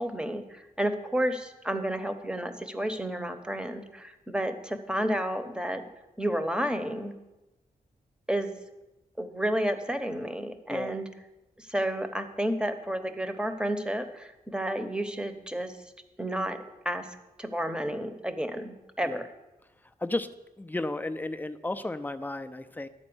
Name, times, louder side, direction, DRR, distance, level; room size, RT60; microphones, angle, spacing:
voice 1, 0.0-5.8 6.2-7.1 8.3-8.6 9.2-11.1 11.6-15.7 16.2-16.6 16.8-17.1 17.4-19.2, right 1 dB, 5° right, 8 dB, 0.9 m, -31 dB
voice 2, 20.6-22.9, left 2 dB, 10° left, 8 dB, 0.6 m, -33 dB
10.5 x 4.3 x 7.9 m, 1.0 s
cardioid pair, 70°, 16 cm